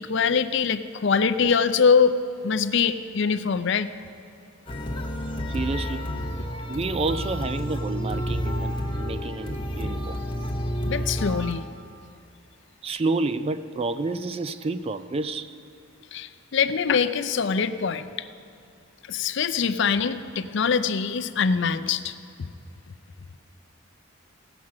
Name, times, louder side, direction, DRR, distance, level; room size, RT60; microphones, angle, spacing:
voice 1, 0.0-2.1 2.4-3.9 10.8-11.7 16.1-18.3 19.1-22.5, left 6 dB, 55° left, 12 dB, 0.5 m, -23 dB
sound 1, 4.7-11.5, equal, 25° left, 1.0 m, -30 dB
voice 2, 5.5-6.1 6.7-10.2 12.8-15.5, right 3 dB, 30° right, 12 dB, 0.3 m, -29 dB
17.0 x 6.0 x 7.4 m, 2.5 s
head